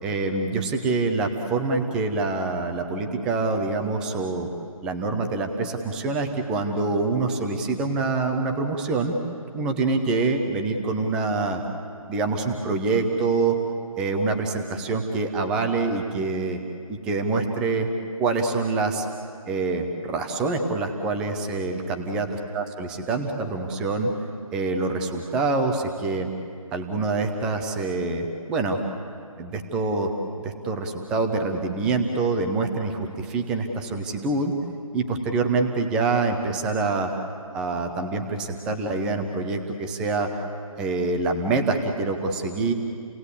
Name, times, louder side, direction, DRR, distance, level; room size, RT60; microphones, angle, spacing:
voice 1, 0.0-4.5 4.8-9.1 9.5-11.6 12.1-13.6 14.0-16.6 16.9-17.9 18.2-19.1 19.5-22.3 22.5-24.1 24.5-26.3 26.7-28.8 29.4-30.1 30.4-34.5 34.9-37.1 37.5-40.3 40.8-42.7, right 3 dB, 5° right, 5 dB, 0.6 m, -25 dB
30.0 x 18.5 x 8.2 m, 2.3 s
figure-of-eight pair, 160°, 18 cm